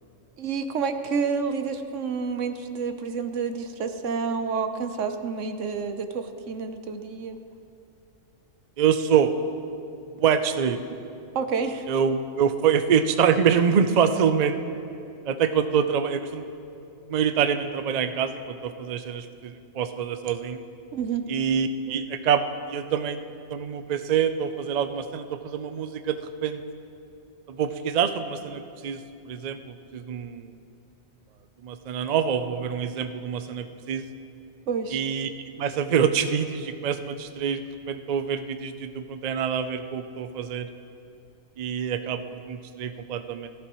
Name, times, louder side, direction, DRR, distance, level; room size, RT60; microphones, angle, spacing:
voice 1, 0.4-7.4 11.3-11.9 20.9-21.3 34.7-35.0, right 5 dB, 80° right, 8 dB, 1.1 m, -29 dB
voice 2, 8.8-9.3 10.1-10.8 11.9-14.6 15.3-16.4 17.1-20.6 21.3-23.2 23.5-26.6 27.5-30.5 31.6-34.0 34.9-35.3 35.6-40.7 41.6-43.5, right 7 dB, 50° right, 9 dB, 0.5 m, -25 dB
17.5 x 14.5 x 3.0 m, 2.6 s
omnidirectional pair, 1.3 m